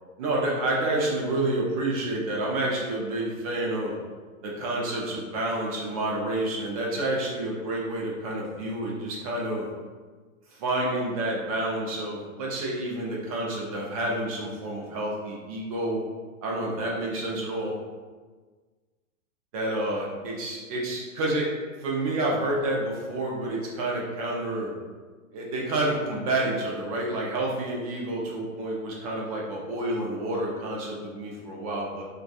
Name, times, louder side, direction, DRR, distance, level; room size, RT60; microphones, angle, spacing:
voice 1, 0.2-3.9 4.4-9.7 10.5-16.0 16.4-17.7 19.5-21.5 21.8-24.7 25.3-32.0, right 1 dB, 30° right, -3 dB, 0.4 m, -29 dB
2.6 x 2.3 x 2.3 m, 1.4 s
hypercardioid pair, 150°, 40 cm